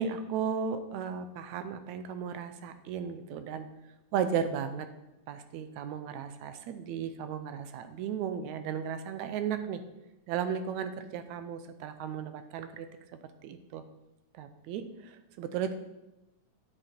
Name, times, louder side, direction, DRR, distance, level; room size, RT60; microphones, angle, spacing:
voice 1, 0.0-3.7 4.1-4.9 5.3-9.8 10.3-12.9 13.4-13.8 14.3-15.8, right 7 dB, 80° right, 10 dB, 1.9 m, -35 dB
9.7 x 7.7 x 4.4 m, 0.97 s
omnidirectional pair, 3.5 m